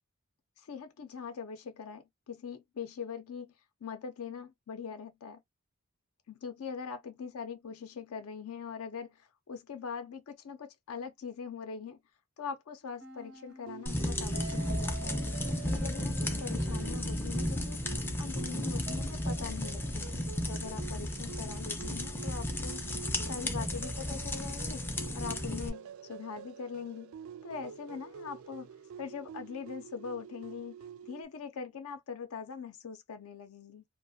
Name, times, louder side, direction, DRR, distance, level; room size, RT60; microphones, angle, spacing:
voice 1, 0.6-3.5 3.8-5.4 6.3-12.0 12.4-15.2 15.6-17.8 18.2-20.1 20.4-23.0 23.3-24.8 25.1-27.1 27.4-28.7 29.0-33.8, left 6 dB, 70° left, 0.4 m, -42 dB
sound 1, 13.0-18.0, right 3 dB, 85° right, 0.9 m, -48 dB
sound 2, 13.7-31.2, right 8 dB, 65° right, 0.3 m, -48 dB
sound 3, 13.9-25.7, left 1 dB, 10° left, 0.3 m, -34 dB
2.3 x 2.1 x 2.6 m
head